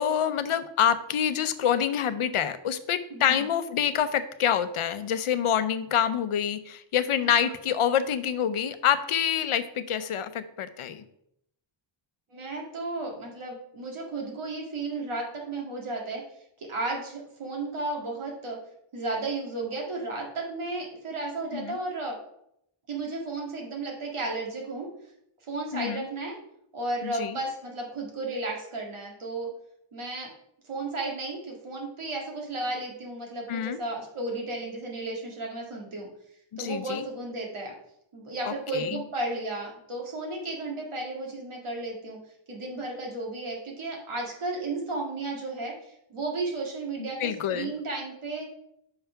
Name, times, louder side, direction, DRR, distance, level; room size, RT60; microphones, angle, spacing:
voice 1, 0.0-11.0 21.5-21.8 25.7-26.1 27.0-27.4 33.5-33.8 36.5-37.0 38.4-39.0 47.0-47.7, left 9 dB, 85° left, 12 dB, 0.7 m, -27 dB
voice 2, 3.1-3.4 7.3-7.5 12.3-16.2 16.6-18.6 18.9-22.2 22.9-24.9 25.5-26.4 26.7-29.5 29.9-30.3 30.6-36.1 36.6-37.7 38.1-42.2 42.5-48.5, right 2 dB, 75° right, -1 dB, 2.0 m, -34 dB
5.7 x 5.6 x 5.7 m, 0.77 s
wide cardioid pair, 160°, 49 cm